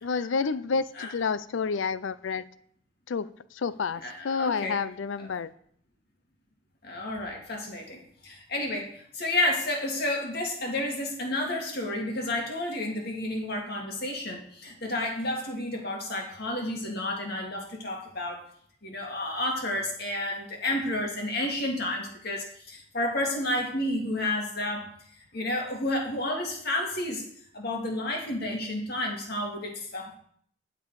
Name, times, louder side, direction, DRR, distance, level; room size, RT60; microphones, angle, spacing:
voice 1, 0.0-2.4 3.1-5.5, left 5 dB, 75° left, 17 dB, 0.5 m, -29 dB
voice 2, 4.0-4.8 5.2-5.3 6.8-18.4 18.8-24.9 25.3-27.2 27.5-30.2, left 1 dB, 55° left, 1 dB, 2.1 m, -31 dB
10.5 x 6.9 x 4.7 m, 0.63 s
head